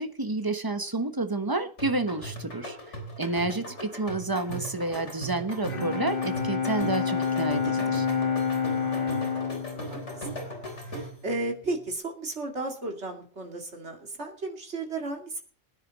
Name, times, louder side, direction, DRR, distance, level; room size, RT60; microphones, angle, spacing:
voice 1, 0.0-2.8 3.2-8.1, right 2 dB, 20° right, 8 dB, 1.0 m, -30 dB
sound 1, 1.8-11.3, right 1 dB, 60° left, 4.2 m, -38 dB
voice 2, 3.4-3.7 8.7-9.6 9.9-10.5 10.8-15.4, right 2 dB, 60° right, 3 dB, 2.7 m, -35 dB
Bowed string instrument, 5.5-11.2, left 6 dB, 45° left, 1.6 m, -29 dB
20.0 x 9.8 x 4.1 m, 0.42 s
omnidirectional pair, 1.3 m